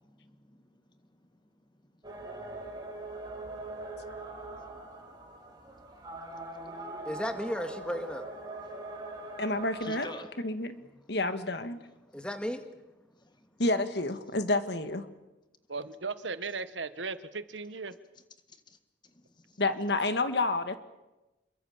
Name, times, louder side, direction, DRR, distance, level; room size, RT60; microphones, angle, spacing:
voice 1, 0.0-0.8 1.2-1.3 3.7-4.2 4.5-4.6 4.9-5.0 5.6-5.7 6.0-6.1 6.6-6.9 8.7-8.8 9.8-10.3 10.7-10.9 12.1-12.2 13.1-13.4 18.7-18.8 19.0-19.6, left 2 dB, 25° left, 8 dB, 1.8 m, -50 dB
sound 1, 2.0-10.2, right 2 dB, 25° right, 4.2 m, -42 dB
voice 2, 7.0-8.3 12.1-12.6, equal, 5° left, 6 dB, 2.0 m, -34 dB
voice 3, 9.4-10.1 10.4-10.8 11.1-11.8 13.6-15.1 19.6-20.8, left 2 dB, 65° left, 10 dB, 1.7 m, -29 dB
voice 4, 15.7-17.9, right 4 dB, 85° right, 13 dB, 1.3 m, -37 dB
27.0 x 22.5 x 7.2 m, 1.0 s
head